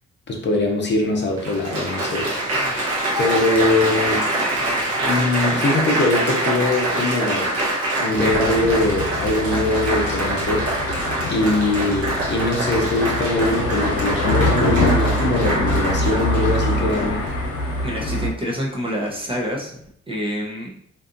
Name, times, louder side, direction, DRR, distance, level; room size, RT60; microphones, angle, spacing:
voice 1, 0.3-2.7 3.2-4.2 5.0-7.5 8.0-10.7 11.3-17.2, left 2 dB, 35° left, 1 dB, 0.6 m, -22 dB
Applause, 0.6-0.7 1.4-17.3 18.0-18.4, right 1 dB, 50° right, 0.8 m, -25 dB
sound 1, 8.1-18.3, left 1 dB, 75° left, 0.8 m, -24 dB
voice 2, 17.8-19.8 20.1-20.7, equal, 20° right, -2 dB, 0.6 m, -27 dB
2.6 x 2.4 x 2.4 m, 0.69 s
cardioid pair, 90°, 30 cm